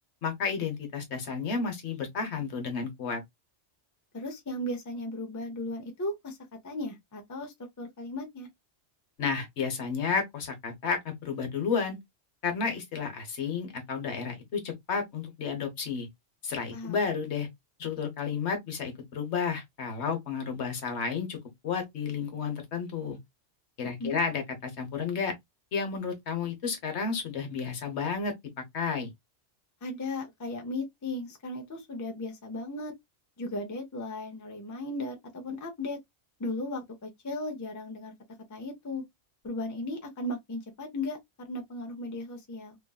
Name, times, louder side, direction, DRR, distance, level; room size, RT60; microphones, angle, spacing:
voice 1, 0.2-3.2 9.2-12.0 12.4-16.1 16.4-17.5 17.8-21.4 21.6-23.2 23.8-25.3 25.7-28.3 28.7-29.1, left 5 dB, 70° left, 1.2 m, -31 dB
voice 2, 4.1-6.4 6.6-8.5 16.7-17.0 24.0-24.2 29.8-32.9 33.4-36.0 36.4-38.1 38.5-39.0 39.4-42.8, left 2 dB, 20° left, 0.5 m, -36 dB
2.9 x 2.6 x 2.3 m
omnidirectional pair, 1.2 m